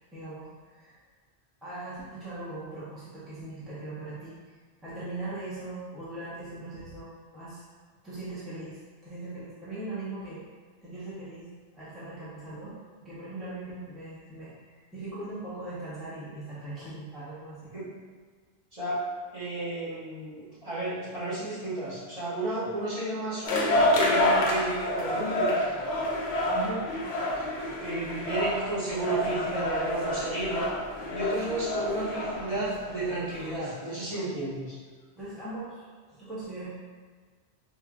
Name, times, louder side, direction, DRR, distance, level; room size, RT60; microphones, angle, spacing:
voice 1, 0.1-1.0 1.6-7.6 8.0-10.4 10.8-17.7 26.5-26.9 35.1-36.7, right 2 dB, ahead, -12 dB, 0.8 m, -40 dB
voice 2, 18.7-19.0 19.3-25.5 27.8-30.7 31.1-34.8, right 2 dB, 35° right, -12 dB, 1.3 m, -32 dB
sound 1, 23.4-33.6, left 1 dB, 80° left, 0.9 m, -28 dB
4.4 x 2.5 x 2.3 m, 1.6 s
omnidirectional pair, 1.1 m